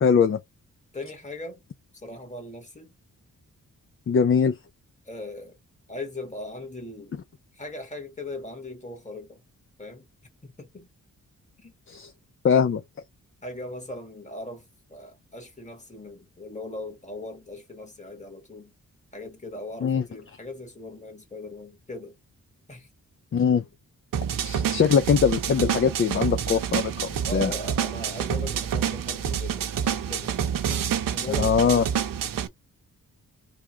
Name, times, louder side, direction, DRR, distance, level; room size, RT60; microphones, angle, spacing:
voice 1, 0.0-0.4 4.1-4.6 11.9-12.1 12.4-12.8 19.8-20.0 23.3-23.6 24.4-27.5 31.4-31.8, left 6 dB, 40° left, 0.5 m, -22 dB
voice 2, 0.9-1.6 1.9-2.9 5.0-5.6 5.9-7.2 7.5-9.4 9.8-10.1 10.4-10.9 11.6-11.7 13.4-18.7 19.1-22.1 22.7-22.9 27.2-30.8 31.1-31.8, left 2 dB, 20° left, 1.7 m, -39 dB
sound 1, 24.1-32.5, right 8 dB, 90° right, 0.7 m, -28 dB
3.4 x 2.4 x 4.5 m
cardioid pair, 75°, 32 cm